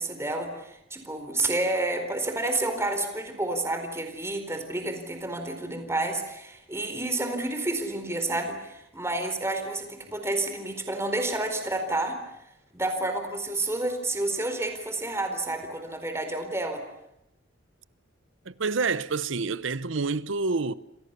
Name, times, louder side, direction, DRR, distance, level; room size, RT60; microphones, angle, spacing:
voice 1, 0.0-12.1 12.7-16.8, right 2 dB, 15° right, 4.3 m, -30 dB
voice 2, 18.5-20.7, right 4 dB, 80° right, 0.9 m, -28 dB
29.0 x 26.5 x 6.9 m
head